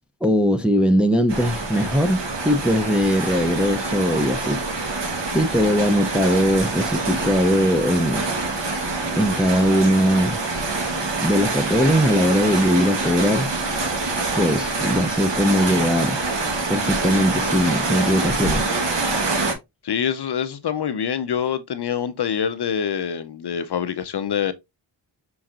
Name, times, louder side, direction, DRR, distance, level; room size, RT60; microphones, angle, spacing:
voice 1, 0.2-4.9 5.3-8.3 9.2-10.4 11.2-13.5 14.4-16.2 16.7-18.7, equal, ahead, 0.5 m, -20 dB
sound 1, 1.3-19.5, right 3 dB, 60° right, 1.3 m, -25 dB
voice 2, 19.8-24.5, left 8 dB, 55° left, 0.6 m, -25 dB
5.8 x 3.9 x 2.4 m
wide cardioid pair, 115°, 47 cm